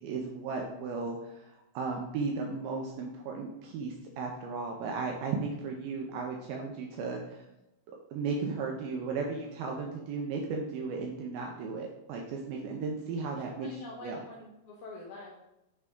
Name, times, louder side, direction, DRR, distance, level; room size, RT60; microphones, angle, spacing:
voice 1, 0.0-7.4 8.1-13.7 14.0-14.2, right 4 dB, 80° right, 1 dB, 2.4 m, -35 dB
voice 2, 13.4-15.3, left 4 dB, 90° left, -2 dB, 1.7 m, -45 dB
8.2 x 3.6 x 3.6 m, 0.91 s
omnidirectional pair, 4.5 m